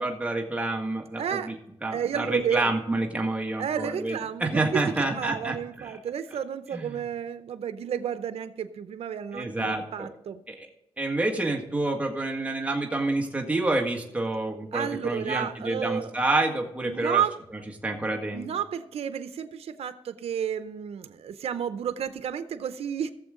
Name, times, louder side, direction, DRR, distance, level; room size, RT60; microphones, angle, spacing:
voice 1, 0.0-1.5 1.8-5.9 6.7-7.0 9.3-10.1 10.5-10.7 11.0-17.2 17.8-18.5, right 2 dB, 15° right, 1 dB, 1.7 m, -28 dB
voice 2, 1.1-1.5 1.9-2.6 3.6-10.4 14.7-16.1 16.8-17.4 18.3-23.1, right 8 dB, 80° right, 11 dB, 0.7 m, -31 dB
17.0 x 7.1 x 3.7 m, 0.86 s
cardioid pair, 90°, 10 cm